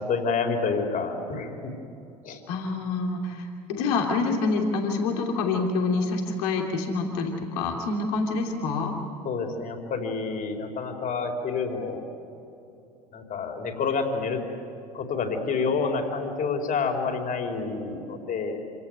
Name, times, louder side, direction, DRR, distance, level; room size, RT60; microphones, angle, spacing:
voice 1, 0.0-1.7 2.2-2.4 9.2-12.0 13.1-14.4 14.9-18.6, left 4 dB, 45° left, 4 dB, 4.7 m, -28 dB
voice 2, 2.5-8.9, left 3 dB, 70° left, 1 dB, 3.1 m, -27 dB
27.0 x 17.5 x 9.5 m, 2.8 s
hypercardioid pair, 70°, 20 cm